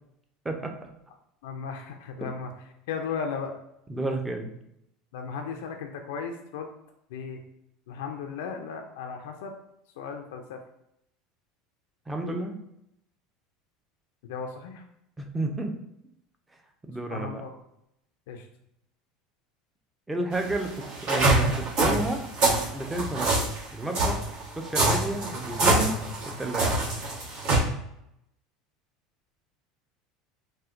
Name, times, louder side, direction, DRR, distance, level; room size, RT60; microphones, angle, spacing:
voice 1, 1.4-2.5 2.9-3.6 5.1-6.7 7.1-7.4 7.9-9.5 10.0-10.6 14.2-14.8 17.1-17.5 18.3-18.5, left 5 dB, 85° left, 3 dB, 0.3 m, -35 dB
voice 2, 3.9-4.5 12.1-12.5 15.2-15.7 16.9-17.4 20.1-22.2 22.7-23.3 23.7-24.3 24.6-26.0 26.2-26.7, right 2 dB, 10° right, 3 dB, 0.4 m, -31 dB
sound 1, 20.3-27.6, right 2 dB, 70° right, 1.1 m, -25 dB
4.1 x 2.1 x 2.4 m, 0.79 s
supercardioid pair, 115°, 0 cm